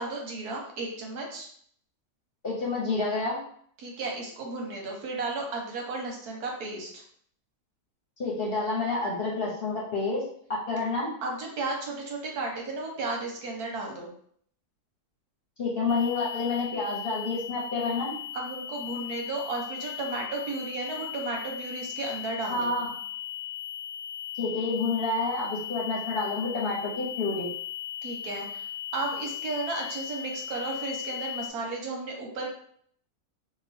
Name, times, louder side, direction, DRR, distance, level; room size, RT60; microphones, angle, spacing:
voice 1, 0.0-1.5 3.8-6.9 11.2-14.1 18.3-22.7 28.0-28.7 28.9-32.5, right 3 dB, 80° right, 0 dB, 1.4 m, -34 dB
voice 2, 2.4-3.4 8.2-11.1 15.6-18.1 22.5-22.9 24.3-27.5, left 3 dB, 45° left, -4 dB, 0.8 m, -29 dB
sound 1, 15.9-31.5, left 10 dB, 90° left, 0.5 m, -38 dB
3.0 x 2.4 x 4.2 m, 0.62 s
omnidirectional pair, 1.6 m